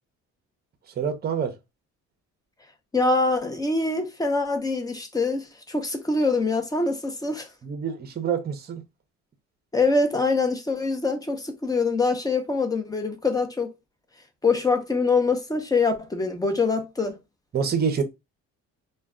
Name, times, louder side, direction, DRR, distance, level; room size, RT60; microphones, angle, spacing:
voice 1, 1.0-1.6 7.6-8.8 17.5-18.0, right 7 dB, 35° right, 0.6 m, -26 dB
voice 2, 2.9-7.5 9.7-13.7 14.4-17.2, left 3 dB, 10° left, 0.5 m, -24 dB
2.2 x 2.2 x 3.5 m
cardioid pair, 120°, 30 cm